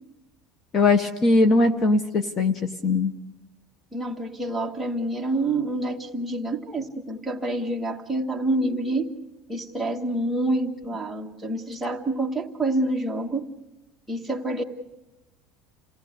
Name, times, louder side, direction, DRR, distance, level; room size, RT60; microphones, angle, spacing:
voice 1, 0.7-3.1, left 3 dB, 25° left, 10 dB, 0.7 m, -20 dB
voice 2, 3.9-9.1 9.5-13.4 14.1-14.6, right 2 dB, 5° right, 0 dB, 1.2 m, -27 dB
28.0 x 17.0 x 6.5 m, 0.98 s
cardioid pair, 165°, 0 cm